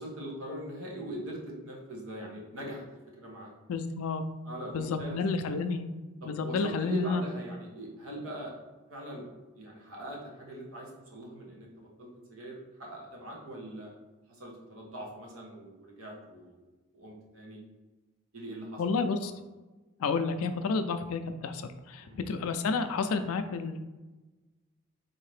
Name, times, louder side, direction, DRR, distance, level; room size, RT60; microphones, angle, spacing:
voice 1, 0.0-2.8 3.2-3.5 4.4-5.2 6.2-8.5 8.9-9.3 9.5-13.9 14.3-16.6 16.9-17.6 18.3-18.9 19.2-19.3 22.0-22.2, right 1 dB, 75° right, -2 dB, 1.0 m, -41 dB
voice 2, 3.7-4.2 4.7-5.9 6.3-7.2 18.8-19.3 20.0-23.8, left 4 dB, 80° left, 9 dB, 0.4 m, -30 dB
4.0 x 2.8 x 3.2 m, 1.2 s
head